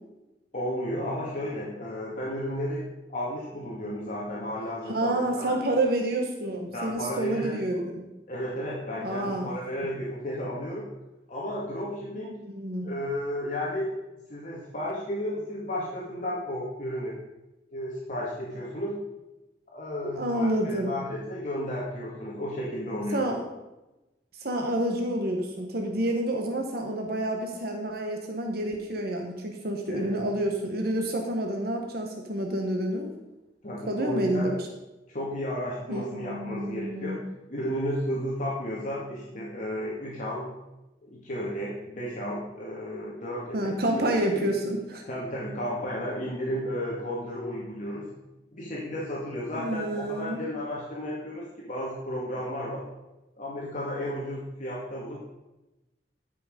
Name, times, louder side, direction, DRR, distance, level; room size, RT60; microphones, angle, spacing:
voice 1, 0.5-2.8 3.1-5.6 6.7-7.5 8.3-10.9 11.3-12.4 12.8-13.9 14.3-17.1 17.7-19.0 19.7-23.2 29.9-30.2 33.6-34.5 35.1-37.2 37.5-40.5 41.0-44.0 44.3-44.4 45.1-48.1 48.5-52.8 53.4-55.2, equal, 45° left, -5 dB, 2.1 m, -33 dB
voice 2, 4.9-8.0 9.0-9.5 12.5-12.9 20.0-20.9 23.1-23.4 24.4-33.1 33.9-34.6 35.9-37.2 43.5-45.0 49.5-50.4, right 1 dB, 60° right, 2 dB, 1.3 m, -29 dB
14.0 x 6.1 x 5.2 m, 1.0 s
head